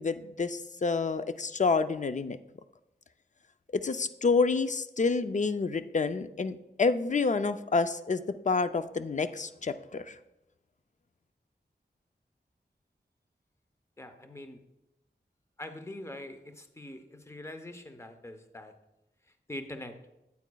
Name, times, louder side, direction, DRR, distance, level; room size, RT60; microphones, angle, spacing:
voice 1, 0.0-2.4 3.7-10.2, left 4 dB, 45° left, 11 dB, 0.4 m, -28 dB
voice 2, 14.0-14.6 15.6-18.7 19.3-20.0, left 1 dB, 15° left, 8 dB, 0.7 m, -43 dB
8.9 x 8.3 x 2.3 m, 0.91 s
wide cardioid pair, 60°, 18 cm